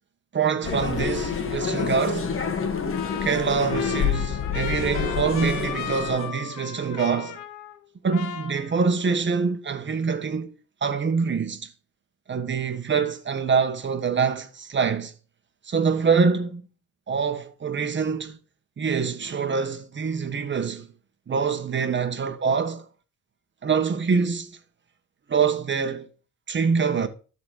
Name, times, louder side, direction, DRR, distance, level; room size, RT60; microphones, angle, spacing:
voice 1, 0.3-2.3 3.2-7.4 8.0-10.5 10.8-11.7 12.3-15.1 15.7-16.6 17.1-18.4 18.8-20.9 21.3-22.9 23.6-24.6 25.3-26.1 26.5-27.1, right 5 dB, 40° right, 1.6 m, -25 dB
sound 1, 0.6-6.3, left 6 dB, 45° left, 1.6 m, -28 dB
Trumpet, 2.9-9.1, left 9 dB, 90° left, 1.2 m, -37 dB
12.5 x 4.2 x 6.6 m
cardioid pair, 90°, 30 cm